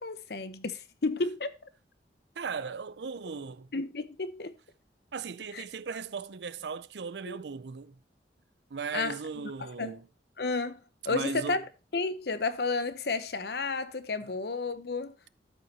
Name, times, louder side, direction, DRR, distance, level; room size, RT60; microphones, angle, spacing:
voice 1, 0.0-1.5 3.7-4.5 5.5-5.6 7.3-7.4 8.9-9.9 10.4-10.8 11.0-11.6 11.9-15.1, left 3 dB, 60° left, 0.8 m, -32 dB
voice 2, 2.4-3.7 5.1-7.9 8.7-10.1 11.0-11.6, right 5 dB, 70° right, 0.5 m, -37 dB
12.5 x 5.6 x 2.9 m
head